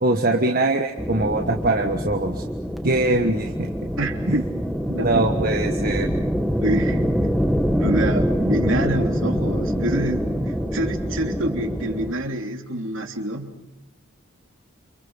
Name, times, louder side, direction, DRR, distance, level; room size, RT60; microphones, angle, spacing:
voice 1, 0.0-2.4 2.8-3.7 4.3-4.4 4.9-6.1, right 2 dB, 40° right, 3 dB, 1.5 m, -22 dB
sound 1, 1.0-12.1, equal, ahead, 1.7 m, -25 dB
voice 2, 4.0-4.5 5.0-5.2 5.8-5.9 6.6-7.0 7.8-13.6, right 1 dB, 60° right, 4 dB, 3.3 m, -26 dB
29.0 x 28.0 x 5.7 m, 0.92 s
head